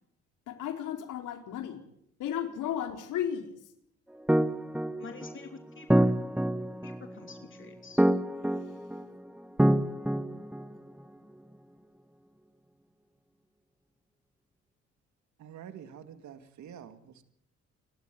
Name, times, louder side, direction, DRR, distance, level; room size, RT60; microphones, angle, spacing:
voice 1, 0.5-1.8 2.2-3.6 8.6-8.7, left 9 dB, 85° left, 5 dB, 4.2 m, -34 dB
sound 1, 4.3-11.0, right 1 dB, 5° right, 1.1 m, -27 dB
voice 2, 5.0-6.2 6.8-8.0, left 5 dB, 40° left, 5 dB, 3.1 m, -47 dB
voice 3, 15.4-17.2, right 8 dB, 70° right, 8 dB, 2.3 m, -47 dB
28.5 x 13.0 x 9.8 m, 0.72 s
cardioid pair, 90°, 30 cm